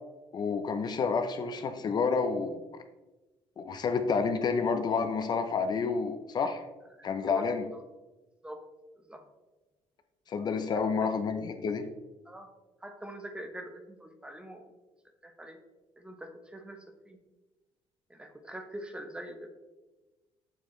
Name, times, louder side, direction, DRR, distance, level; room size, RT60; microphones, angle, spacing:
voice 1, 0.3-2.6 3.6-6.6 7.0-7.7 10.3-11.9, left 5 dB, 40° left, 7 dB, 0.6 m, -29 dB
voice 2, 7.0-7.4 8.4-8.6 9.1-9.2 10.8-11.1 12.2-12.5 12.8-14.6 15.2-15.6 16.0-17.2 18.1-19.5, right 1 dB, 10° right, 6 dB, 0.8 m, -44 dB
7.2 x 6.8 x 3.1 m, 1.1 s
cardioid pair, 125°, 11 cm